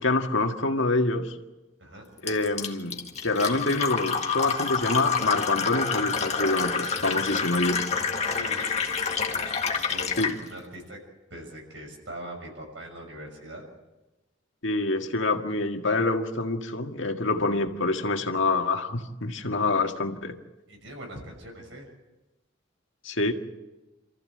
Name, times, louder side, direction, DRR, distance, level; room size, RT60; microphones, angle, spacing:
voice 1, 0.0-1.3 2.2-7.8 10.2-10.4 14.6-20.3 23.0-23.3, left 2 dB, 70° left, 4 dB, 1.8 m, -26 dB
Fill (with liquid), 2.3-10.4, left 5 dB, 35° left, 1.7 m, -28 dB
voice 2, 8.2-11.0 11.3-13.6 20.7-21.9, right 1 dB, 65° right, 2 dB, 6.3 m, -42 dB
27.5 x 14.5 x 7.8 m, 1.1 s
head